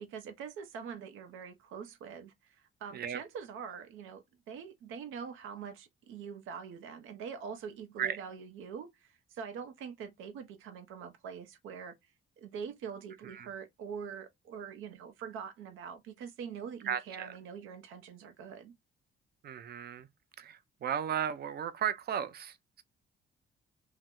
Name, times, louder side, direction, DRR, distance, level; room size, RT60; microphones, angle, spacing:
voice 1, 0.0-11.9 12.4-18.8, right 7 dB, 90° right, 0.8 m, -44 dB
voice 2, 16.8-17.3 19.4-20.1 20.4-22.8, right 9 dB, 50° right, 0.5 m, -35 dB
2.8 x 2.1 x 3.5 m
cardioid pair, 90°, 20 cm